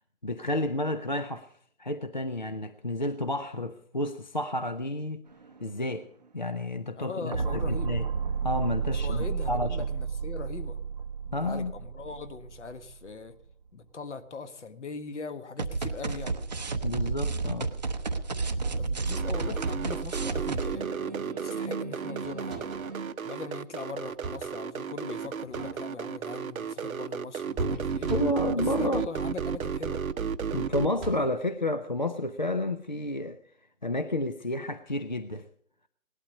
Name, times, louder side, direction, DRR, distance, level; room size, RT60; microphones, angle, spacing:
voice 1, 0.2-1.5 1.8-5.3 5.6-6.1 6.3-8.1 8.4-9.9 11.3-11.7 16.8-17.7 28.1-29.1 30.5-33.4 33.8-35.5, left 1 dB, 35° left, 0.5 m, -30 dB
sound 1, 5.3-5.6 7.3-13.1 15.6-23.1, right 4 dB, 30° right, 0.7 m, -32 dB
voice 2, 7.0-7.9 9.0-10.8 11.3-13.3 13.7-16.4 18.8-22.7 23.2-28.1 28.5-30.0, left 4 dB, 55° left, 1.6 m, -40 dB
sound 2, 19.1-30.9, right 7 dB, 70° right, 0.8 m, -33 dB
sound 3, 22.2-23.0 24.0-24.6 25.4-26.1 27.6-28.6 29.5-29.9 30.5-31.5 33.2-33.3, right 1 dB, ahead, 1.1 m, -39 dB
18.5 x 11.5 x 5.2 m
figure-of-eight pair, 160°, 43 cm